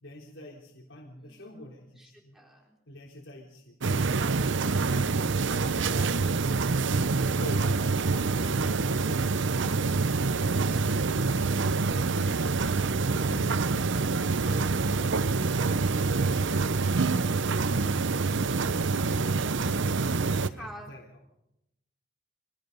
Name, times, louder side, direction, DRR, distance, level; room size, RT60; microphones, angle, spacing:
voice 1, 0.0-2.4 2.9-5.3 5.8-6.4 7.3-9.9 10.4-12.8 13.2-15.3 15.6-17.2 17.6-19.7 20.1-21.1, left 1 dB, 75° left, -3 dB, 3.8 m, -47 dB
voice 2, 2.0-2.8 20.1-20.9, equal, ahead, -2 dB, 4.5 m, -50 dB
sound 1, 3.8-20.5, right 4 dB, 65° right, 0.7 m, -26 dB
25.5 x 19.0 x 5.5 m, 0.85 s
head